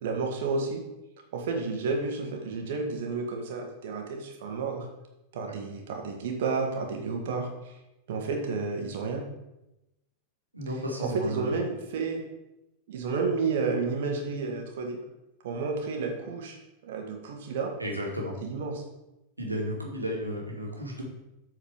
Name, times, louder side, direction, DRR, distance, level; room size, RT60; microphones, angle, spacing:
voice 1, 0.0-0.8 1.3-4.9 5.3-7.7 8.1-9.2 11.0-12.2 12.9-15.0 15.4-16.6 16.8-17.7 18.4-18.8, right 4 dB, 55° right, 2 dB, 1.9 m, -31 dB
voice 2, 10.5-11.5 17.8-18.3 19.4-21.0, equal, 85° right, -1 dB, 2.3 m, -33 dB
8.5 x 4.8 x 6.6 m, 0.93 s
figure-of-eight pair, 90°, 0 cm